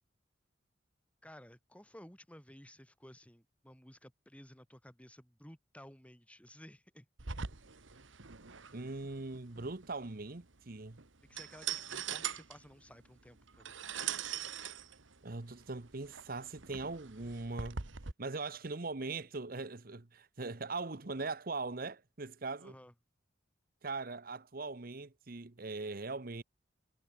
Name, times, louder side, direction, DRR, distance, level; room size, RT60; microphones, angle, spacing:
voice 1, 1.2-7.1 11.3-13.8 22.6-22.9, equal, 5° left, 4.5 m, -55 dB
sound 1, 7.2-18.1, right 8 dB, 85° right, 1.6 m, -43 dB
voice 2, 8.7-11.0 15.2-17.9 18.2-22.7 23.8-26.4, right 3 dB, 50° right, 1.1 m, -40 dB
head